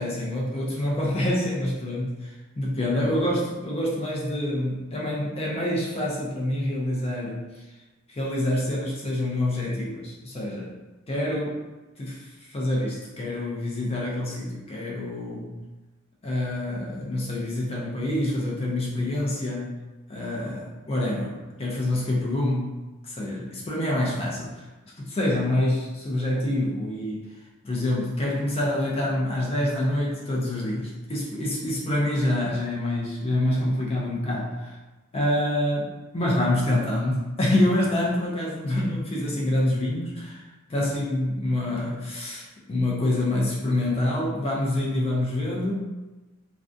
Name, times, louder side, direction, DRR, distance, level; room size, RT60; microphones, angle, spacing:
voice 1, 0.0-7.5 8.1-10.7 11.1-11.6 12.0-15.5 16.2-19.8 20.1-22.8 23.0-24.6 25.0-27.3 27.6-34.8 35.1-45.7, left 1 dB, 30° left, -4 dB, 0.4 m, -26 dB
2.4 x 2.2 x 2.5 m, 1.2 s
head